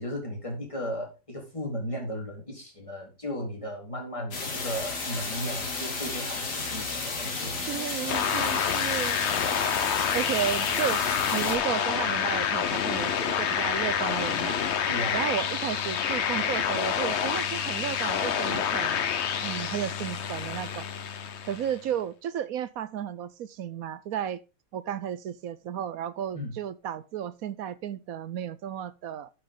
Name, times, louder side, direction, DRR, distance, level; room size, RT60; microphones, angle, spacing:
voice 1, 0.0-7.8 8.5-8.7 14.9-15.2 26.3-26.5, equal, 20° left, 4.1 m, -35 dB
sound 1, 4.3-11.6, left 3 dB, 80° left, 3.0 m, -33 dB
voice 2, 7.7-9.2 10.1-11.0 11.3-14.6 15.1-19.1 19.4-20.9 21.4-24.4 24.7-29.3, right 10 dB, 65° right, 1.0 m, -33 dB
sound 2, 8.1-21.8, left 7 dB, 50° left, 1.0 m, -28 dB
12.5 x 7.1 x 3.8 m
omnidirectional pair, 1.7 m